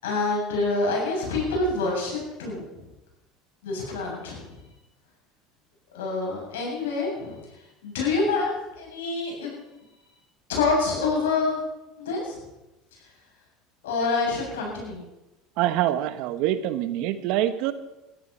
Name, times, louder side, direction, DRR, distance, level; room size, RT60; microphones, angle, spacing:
voice 1, 0.0-2.8 3.6-4.6 5.9-7.6 7.8-9.5 10.5-11.6 12.0-12.4 13.8-15.0, left 3 dB, 85° left, -2 dB, 7.7 m, -27 dB
voice 2, 15.6-17.7, right 13 dB, 65° right, 12 dB, 1.2 m, -25 dB
17.0 x 13.0 x 5.7 m, 0.98 s
hypercardioid pair, 85°, 0 cm